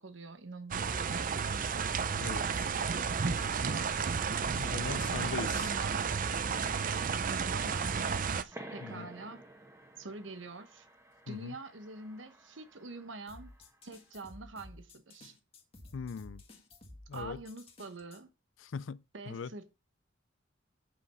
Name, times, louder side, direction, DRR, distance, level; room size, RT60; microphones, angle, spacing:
voice 1, 0.0-1.7 4.8-6.1 7.3-9.4 10.0-10.9 11.3-13.5 13.8-15.3 17.1-18.3 19.1-19.7, right 3 dB, 75° right, 1.1 m, -45 dB
sound 1, 0.7-8.4, right 6 dB, 45° right, 0.6 m, -32 dB
voice 2, 2.2-2.7 4.5-5.7 8.8-9.1 11.3-11.6 15.9-16.4 17.1-17.4 18.6-19.5, left 6 dB, 85° left, 0.4 m, -40 dB
sound 2, 8.5-13.8, right 1 dB, 15° right, 1.4 m, -52 dB
sound 3, 13.3-18.2, left 2 dB, 30° left, 1.8 m, -53 dB
8.5 x 5.4 x 5.5 m
head